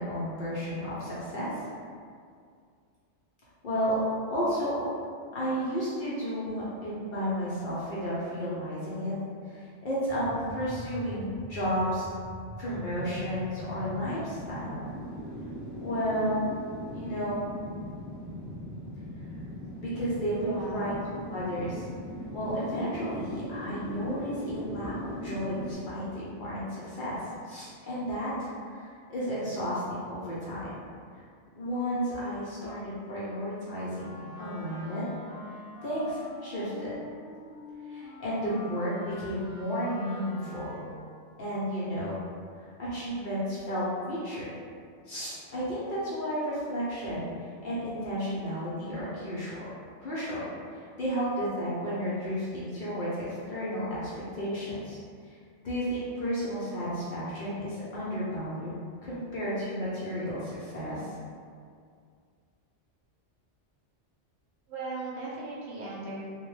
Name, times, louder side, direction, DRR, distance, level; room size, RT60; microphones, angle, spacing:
voice 1, 0.0-1.5 3.6-4.0 4.3-4.9 5.3-9.2 9.5-12.1 12.6-14.8 15.8-16.5 16.9-17.4 19.8-20.9 21.3-21.9 22.3-27.2 27.4-30.7 31.6-35.1 35.5-36.9 37.9-40.8 41.4-42.2 42.6-44.5 45.1-49.6 50.0-50.4 50.7-55.0 55.2-55.3 55.6-61.1, equal, 55° left, -9 dB, 0.6 m, -32 dB
sound 1, 10.1-25.7, equal, 25° right, 0.3 m, -40 dB
voice 2, 20.4-20.8 64.7-66.2, right 2 dB, 70° right, -4 dB, 0.8 m, -37 dB
Wind instrument woodwind instrument, 33.9-41.1, left 2 dB, 80° left, 0.9 m, -44 dB
2.2 x 2.1 x 3.1 m, 2.2 s
omnidirectional pair, 1.2 m